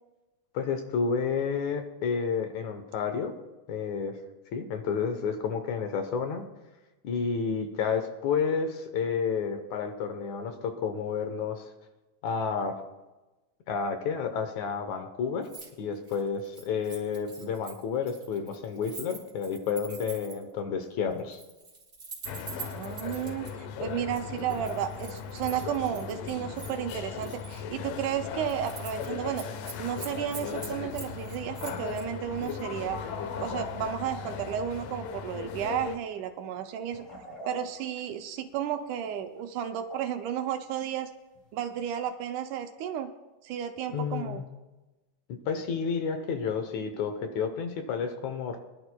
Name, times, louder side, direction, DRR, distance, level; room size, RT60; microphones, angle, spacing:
voice 1, 0.5-3.3 3.7-4.2 4.5-6.5 7.0-11.7 12.2-12.8 13.7-15.5 15.8-21.4 43.9-44.4 45.3-48.6, left 6 dB, 70° left, 6 dB, 2.1 m, -30 dB
Keys jangling, 15.4-15.7 16.0-20.5 21.2-23.5 24.2-26.1 26.6-27.6 28.0-28.1 28.4-29.1 29.3-32.0 32.4-32.6, right 5 dB, 20° right, 3.2 m, -45 dB
sound 1, 22.3-36.0, left 6 dB, 85° left, 2.5 m, -37 dB
voice 2, 22.6-29.5 29.8-33.0 33.4-37.0 37.5-41.1 41.5-43.1 43.4-44.4, right 9 dB, 75° right, 7 dB, 2.0 m, -33 dB
sound 2, 32.6-32.8 33.1-33.8 34.0-34.6 35.7-35.8 36.1-36.3 36.9-38.5 39.4-39.6 39.9-40.3 40.9-41.0 41.3-41.5 42.1-42.2, right 1 dB, 35° left, 5.5 m, -46 dB
23.5 x 11.5 x 2.2 m, 1.1 s
omnidirectional pair, 3.8 m